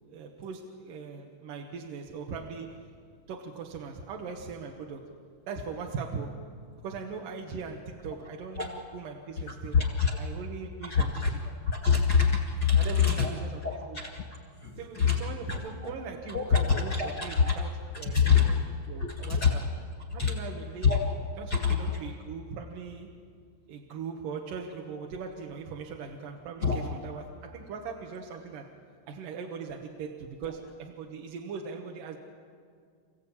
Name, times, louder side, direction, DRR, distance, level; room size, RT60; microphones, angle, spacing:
voice 1, 0.1-2.9 3.3-5.1 5.5-6.4 6.8-9.8 10.2-11.4 12.8-13.6 13.9-14.0 14.8-16.9 17.2-17.7 18.0-19.6 20.1-20.9 21.4-23.1 23.7-28.7 29.1-32.2, right 5 dB, 65° right, 1 dB, 2.4 m, -40 dB
voice 2, 9.4-10.2 10.9-11.3 11.6-13.3 13.6-14.2 14.6-15.2 15.5-15.9 16.3-17.6 18.1-18.5 19.0-19.5 20.2-20.3 20.8-21.0 21.5-22.0 26.6-26.8, left 6 dB, 50° left, 0 dB, 1.3 m, -25 dB
28.5 x 16.0 x 8.5 m, 2.1 s
omnidirectional pair, 5.1 m